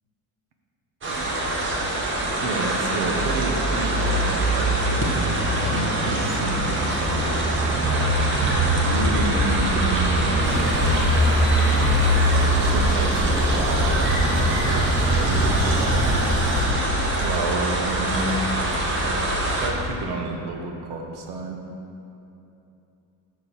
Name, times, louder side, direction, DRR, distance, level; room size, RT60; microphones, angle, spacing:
sound 1, 1.0-19.7, right 1 dB, 30° right, 1.1 m, -22 dB
voice 1, 2.4-7.3 7.6-8.2 8.7-11.1 12.1-15.9 17.1-19.1 19.5-21.6, right 3 dB, 90° right, 3 dB, 1.2 m, -31 dB
sound 2, 10.4-16.7, equal, ahead, 1.0 m, -27 dB
11.5 x 6.4 x 4.4 m, 2.9 s
cardioid pair, 180°, 39 cm